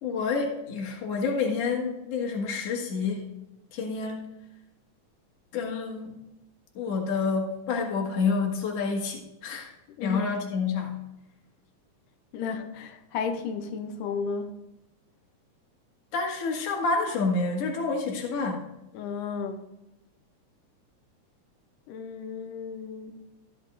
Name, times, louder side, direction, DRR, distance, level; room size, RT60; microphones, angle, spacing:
voice 1, 0.0-3.3 3.7-4.3 5.5-6.2 6.7-9.7 10.0-10.9 16.1-18.7, left 4 dB, 55° left, 2.4 m, -28 dB
voice 2, 12.3-14.5 18.9-19.6 21.9-23.1, left 5 dB, 90° left, 2.4 m, -33 dB
12.5 x 11.5 x 2.5 m
omnidirectional pair, 3.7 m